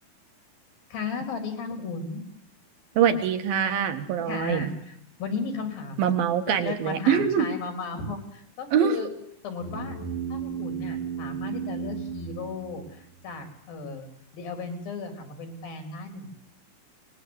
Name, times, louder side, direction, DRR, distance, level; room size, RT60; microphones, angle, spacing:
voice 1, 0.9-2.2 4.3-6.1 6.5-9.1 9.4-10.0 10.3-16.3, left 4 dB, 85° left, 6 dB, 5.6 m, -35 dB
voice 2, 3.0-4.7 6.0-7.5 8.7-9.1, right 8 dB, 85° right, 7 dB, 3.6 m, -24 dB
sound 1, 9.6-13.3, right 7 dB, 65° right, 6.0 m, -34 dB
24.0 x 20.5 x 8.1 m, 0.71 s
omnidirectional pair, 4.0 m